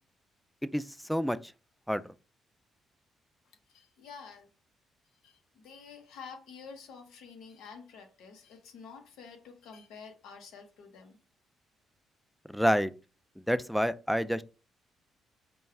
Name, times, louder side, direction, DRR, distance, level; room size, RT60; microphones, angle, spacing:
voice 1, 0.7-1.5 1.9-2.0 12.5-12.9 13.4-14.4, equal, ahead, 0.3 m, -28 dB
voice 2, 3.7-4.5 5.2-11.2, left 5 dB, 90° left, 0.9 m, -49 dB
5.2 x 2.3 x 3.4 m
cardioid pair, 90°, 0 cm